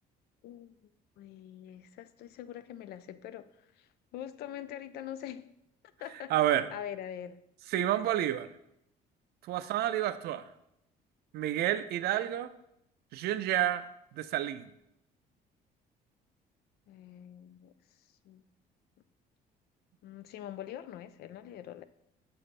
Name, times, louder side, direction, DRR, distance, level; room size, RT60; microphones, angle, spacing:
voice 1, 0.4-0.8 1.2-3.5 3.8-5.5 6.0-7.4 16.9-17.7 18.2-18.4 20.0-21.8, left 10 dB, 70° left, 13 dB, 0.4 m, -44 dB
voice 2, 6.3-6.7 7.7-8.5 9.5-10.4 11.3-12.5 13.1-13.8 14.1-14.6, right 12 dB, 70° right, 13 dB, 0.4 m, -29 dB
7.0 x 3.3 x 4.1 m, 0.79 s
cardioid pair, 110°, 17 cm